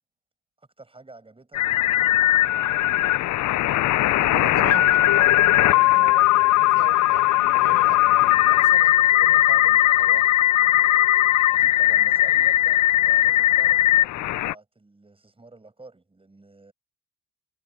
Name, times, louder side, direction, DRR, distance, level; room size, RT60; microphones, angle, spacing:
voice 1, 0.6-3.1 11.5-16.7, right 3 dB, 20° right, 7.6 m, -49 dB
sound 1, 1.5-14.5, left 14 dB, 70° left, 0.6 m, -19 dB
voice 2, 4.2-10.3, right 11 dB, 70° right, 5.7 m, -39 dB
cardioid pair, 90°, 30 cm